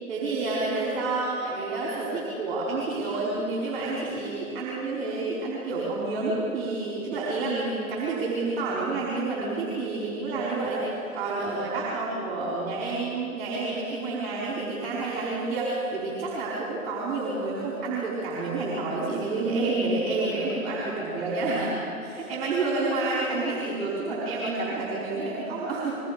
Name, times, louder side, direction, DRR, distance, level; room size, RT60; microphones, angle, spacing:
voice 1, 0.1-21.8 22.0-26.0, right 3 dB, 20° right, -5 dB, 4.8 m, -29 dB
29.0 x 21.5 x 5.2 m, 2.7 s
hypercardioid pair, 155°, 43 cm